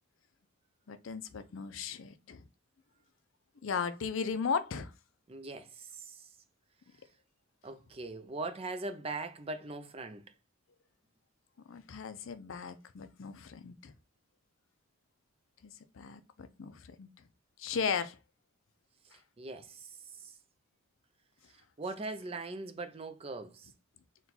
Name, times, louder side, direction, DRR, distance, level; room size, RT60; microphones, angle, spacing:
voice 1, 0.9-2.4 3.6-4.9 11.7-13.9 15.6-17.1 17.6-18.2, left 6 dB, 65° left, 0.5 m, -36 dB
voice 2, 5.3-6.3 7.6-10.3 19.1-20.4 21.8-23.7, right 3 dB, 25° right, 0.4 m, -41 dB
4.2 x 2.3 x 4.0 m
head